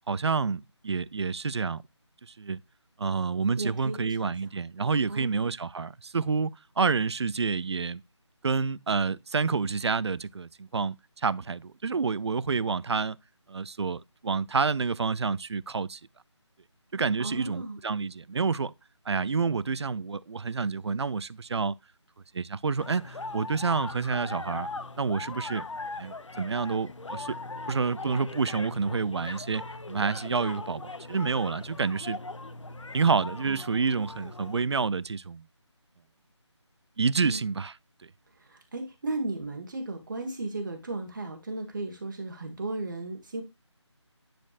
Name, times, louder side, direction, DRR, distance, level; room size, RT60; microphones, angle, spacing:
voice 1, 0.1-1.8 2.3-2.6 3.0-8.0 8.4-11.0 11.2-13.2 13.5-16.0 16.9-18.7 19.1-21.7 22.3-24.7 25.0-25.6 26.0-27.3 27.7-29.6 29.9-32.2 32.9-35.5 37.0-37.7, right 5 dB, 60° right, 0.4 m, -28 dB
voice 2, 3.6-4.3 5.1-5.5 17.2-17.8 33.5-33.6 37.2-37.4 38.4-43.4, right 2 dB, 40° right, 1.5 m, -35 dB
sound 1, 22.8-34.6, left 3 dB, 80° left, 0.8 m, -40 dB
10.0 x 4.3 x 2.4 m
figure-of-eight pair, 165°, 15 cm